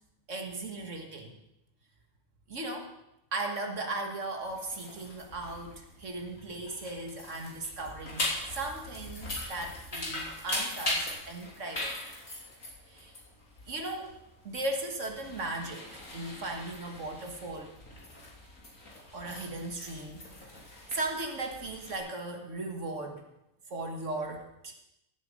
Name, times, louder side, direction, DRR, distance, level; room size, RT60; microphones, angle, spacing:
voice 1, 0.3-1.4 2.5-2.9 3.3-8.2 8.5-12.0 12.9-13.1 13.7-14.1 14.4-17.7 19.1-20.3 20.9-23.2 23.7-24.7, right 2 dB, 60° right, 2 dB, 1.9 m, -37 dB
sound 1, 4.4-22.0, left 1 dB, 75° left, 3.4 m, -40 dB
15.5 x 7.7 x 5.2 m, 0.86 s
omnidirectional pair, 1.4 m